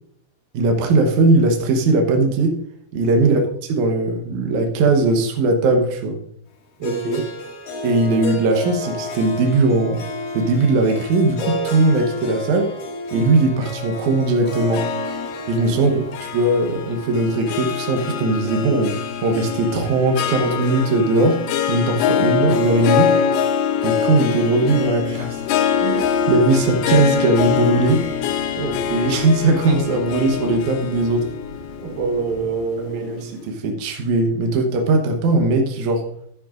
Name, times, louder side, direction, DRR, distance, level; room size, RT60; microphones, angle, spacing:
voice 1, 0.5-2.6 2.9-3.4 3.7-6.2 7.8-10.0 10.3-12.8 13.1-14.9 15.5-16.0 16.3-21.4 21.7-23.2 23.8-25.4 25.8-28.1 28.9-31.3 33.0-33.3 33.6-36.0, right 2 dB, 75° right, 3 dB, 1.8 m, -19 dB
Harp, 6.8-19.0, left 1 dB, 55° left, 3.1 m, -32 dB
voice 2, 6.8-7.3 15.7-16.0 22.1-22.3 28.5-28.8 31.8-33.2, right 4 dB, 45° right, -4 dB, 4.5 m, -26 dB
Harp 2, 14.7-33.1, left 7 dB, 85° left, 2.2 m, -24 dB
sound 1, 24.7-32.6, left 1 dB, 20° right, 3.4 m, -41 dB
12.0 x 10.0 x 2.5 m, 0.69 s
omnidirectional pair, 5.0 m